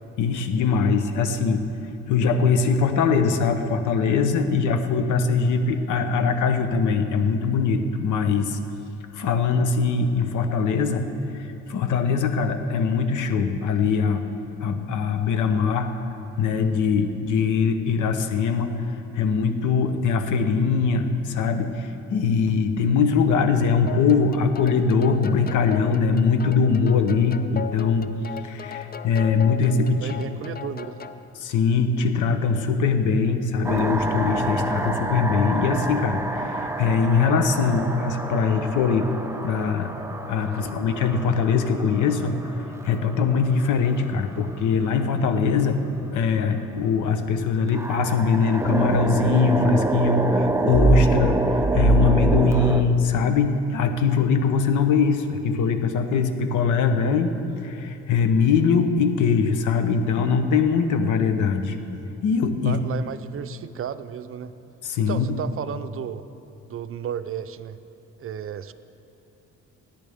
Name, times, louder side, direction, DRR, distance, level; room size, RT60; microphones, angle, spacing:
voice 1, 0.2-1.6 2.1-8.6 9.1-14.3 14.6-15.9 16.4-18.7 19.1-28.1 28.4-30.1 31.4-39.9 40.2-42.6 42.8-45.8 46.1-61.8 62.2-62.8 64.8-65.4, left 5 dB, 80° left, 7 dB, 1.0 m, -22 dB
sound 1, 23.9-31.2, left 6 dB, 30° left, 0.5 m, -38 dB
voice 2, 30.0-31.1 40.6-40.8 62.6-64.5 65.0-66.3 66.7-67.8 68.2-68.7, right 9 dB, 45° right, 12 dB, 0.6 m, -34 dB
sound 2, 33.6-44.5 47.7-52.8, right 2 dB, 10° right, 0.7 m, -26 dB
20.5 x 10.0 x 3.6 m, 2.8 s
cardioid pair, 90°, 30 cm